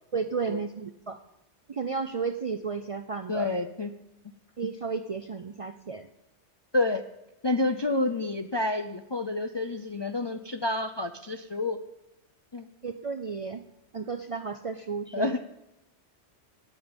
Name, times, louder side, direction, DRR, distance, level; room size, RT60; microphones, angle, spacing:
voice 1, 0.1-1.2 1.7-3.5 4.6-6.1 12.8-13.6 13.9-15.4, right 5 dB, 50° right, 8 dB, 0.4 m, -33 dB
voice 2, 3.3-3.9 6.7-7.0 7.4-11.8 12.5-12.7 15.1-15.4, left 2 dB, 45° left, 7 dB, 0.3 m, -29 dB
16.5 x 9.5 x 5.2 m, 0.91 s
omnidirectional pair, 1.2 m